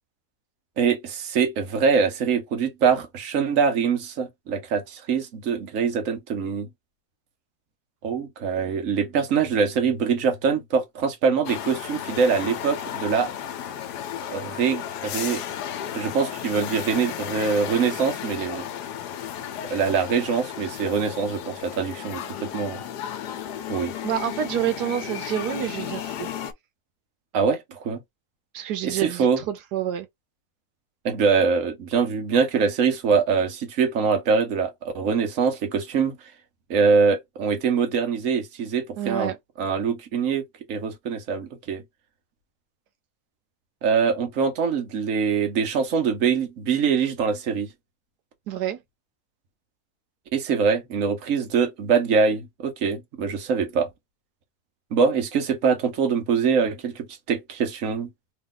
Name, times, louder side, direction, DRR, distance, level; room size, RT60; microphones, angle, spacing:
voice 1, 0.8-6.7 8.0-13.3 14.3-15.4 15.9-18.6 19.7-22.8 23.7-23.9 27.3-28.0 28.8-29.4 31.0-36.2 36.7-39.3 39.6-40.4 40.7-41.8 43.8-47.7 50.3-53.9 54.9-58.1, right 6 dB, 60° right, 1.3 m, -23 dB
sound 1, 11.4-26.5, left 10 dB, 85° left, 1.2 m, -34 dB
voice 2, 24.0-26.3 28.5-30.1 39.0-39.4 48.5-48.8, right 10 dB, 85° right, 1.3 m, -28 dB
3.4 x 2.4 x 3.7 m
omnidirectional pair, 1.7 m